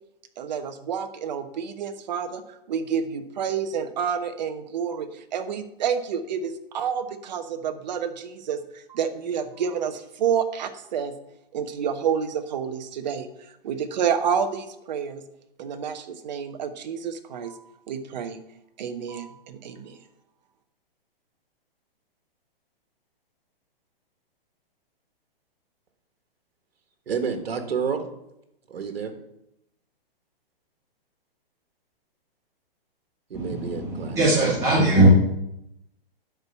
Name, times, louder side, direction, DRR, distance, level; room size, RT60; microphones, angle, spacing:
voice 1, 0.4-2.4 2.7-11.1 11.5-13.3 13.6-15.2 15.6-17.6 17.9-18.4 18.8-20.0, right 7 dB, 45° right, 1.1 m, -29 dB
voice 2, 27.1-28.0 28.7-29.1 33.3-34.5, right 6 dB, 90° right, 1.6 m, -29 dB
voice 3, 33.3-35.1, right 2 dB, 10° right, 1.6 m, -20 dB
10.5 x 4.7 x 6.8 m
hypercardioid pair, 165°, 30 cm